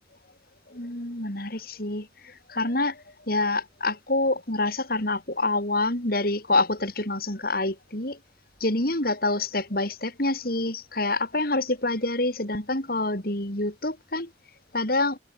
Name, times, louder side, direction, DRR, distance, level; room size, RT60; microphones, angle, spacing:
voice 1, 0.7-8.2 8.6-14.3 14.7-15.2, left 2 dB, 55° left, 5.6 m, -27 dB
head